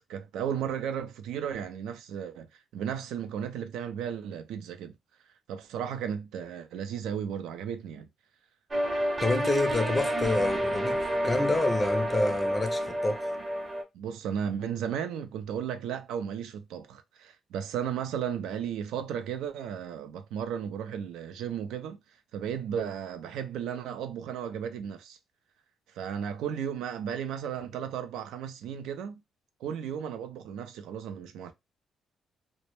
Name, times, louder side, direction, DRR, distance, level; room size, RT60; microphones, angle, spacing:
voice 1, 0.0-2.5 2.7-5.0 5.5-8.1 13.9-22.0 22.3-25.2 25.9-29.2 29.6-31.5, right 8 dB, 85° right, 0.4 m, -34 dB
sound 1, 8.7-13.8, equal, 25° right, 0.6 m, -29 dB
voice 2, 9.2-13.3, left 2 dB, 20° left, 0.4 m, -28 dB
2.1 x 2.0 x 2.9 m
cardioid pair, 90°, 0 cm